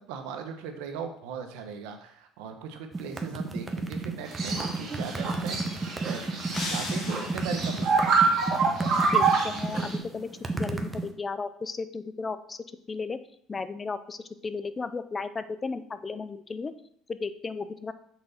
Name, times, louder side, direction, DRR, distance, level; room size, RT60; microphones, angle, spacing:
voice 1, 0.0-8.1, right 6 dB, 85° right, 6 dB, 1.0 m, -39 dB
sound 1, 2.9-11.1, right 3 dB, 20° right, 0.8 m, -31 dB
sound 2, 4.3-10.0, right 4 dB, 55° right, 2.0 m, -27 dB
sound 3, 6.5-7.8, left 2 dB, 65° left, 1.8 m, -37 dB
voice 2, 9.1-10.3 10.6-12.6 12.9-13.2 13.5-16.7 17.1-17.9, left 4 dB, 25° left, 12 dB, 0.5 m, -34 dB
6.1 x 4.0 x 5.6 m, 0.67 s
supercardioid pair, 100°, 0 cm